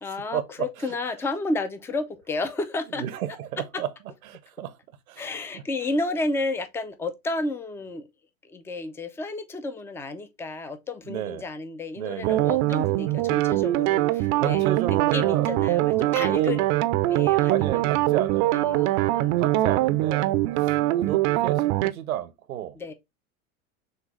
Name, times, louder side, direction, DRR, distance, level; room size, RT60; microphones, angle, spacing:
voice 1, 0.0-3.0 5.2-8.1 8.5-14.7 15.1-16.6 17.0-17.8 18.5-19.4 22.8-22.9, left 2 dB, 5° left, 0.3 m, -31 dB
voice 2, 2.9-3.9 4.3-4.8 5.1-5.3 5.5-5.6 11.1-11.4 12.0-12.5 14.4-15.6 15.9-16.6 17.5-18.6 19.4-22.8, right 11 dB, 80° right, 0.8 m, -32 dB
sound 1, 12.2-21.9, right 16 dB, 50° right, 0.5 m, -23 dB
6.4 x 2.3 x 3.1 m
hypercardioid pair, 85°, 42 cm